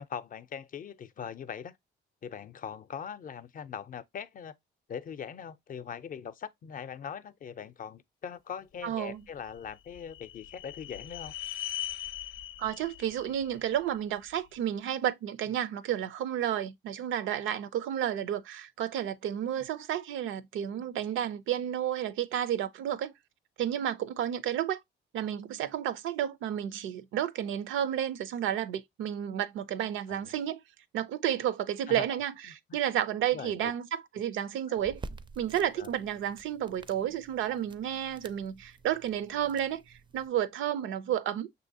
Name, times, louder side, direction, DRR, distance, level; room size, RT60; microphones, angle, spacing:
voice 1, 0.0-1.8 2.2-4.5 4.9-11.3 30.1-30.3 31.9-32.1 32.5-32.8 33.3-33.7 34.7-34.8 35.8-35.9, left 7 dB, 45° left, 0.5 m, -41 dB
voice 2, 8.8-9.2 12.6-23.1 23.6-24.8 25.1-30.6 30.9-35.0 35.4-41.5, right 10 dB, 80° right, 0.5 m, -31 dB
sound 1, 9.2-14.4, left 12 dB, 90° left, 0.6 m, -41 dB
sound 2, 34.8-40.3, right 3 dB, 25° right, 0.4 m, -49 dB
6.0 x 2.7 x 2.6 m
cardioid pair, 90°, 20 cm